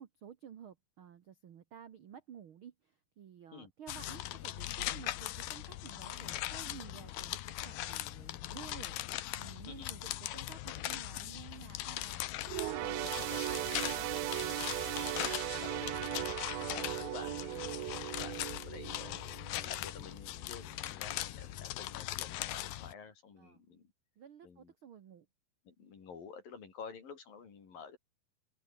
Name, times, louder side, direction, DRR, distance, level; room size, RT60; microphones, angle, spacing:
voice 1, 0.0-13.1 13.5-14.2 23.4-23.6 24.2-25.3, right 8 dB, 70° right, 1.2 m, -53 dB
sound 1, 3.9-22.9, left 15 dB, 85° left, 3.0 m, -40 dB
sound 2, 12.5-20.2 20.6-20.8 21.6-21.7, right 20 dB, 85° right, 2.4 m, -38 dB
voice 2, 12.8-13.4 15.0-15.3 15.6-16.3 16.7-19.2 19.7-23.9 24.4-24.7 25.7-28.0, left 6 dB, 70° left, 5.9 m, -50 dB
open air
omnidirectional pair, 4.3 m